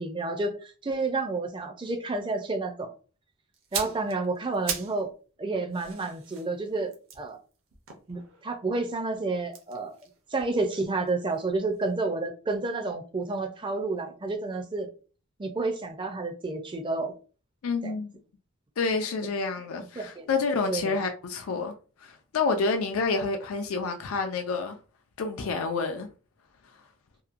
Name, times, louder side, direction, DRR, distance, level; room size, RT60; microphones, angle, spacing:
voice 1, 0.0-2.9 3.7-5.1 5.4-7.4 8.1-9.9 10.3-14.9 15.4-17.1 17.8-18.0 19.9-20.3 20.7-21.0, right 3 dB, 25° right, 0.4 m, -30 dB
sound 1, 3.5-5.1 5.4-8.6 9.4-11.5 11.7-11.9, right 6 dB, 65° right, 0.6 m, -39 dB
voice 2, 17.6-18.1 18.8-21.7 22.0-24.8 25.2-26.1, left 4 dB, 85° left, 0.4 m, -28 dB
2.8 x 2.1 x 2.5 m
head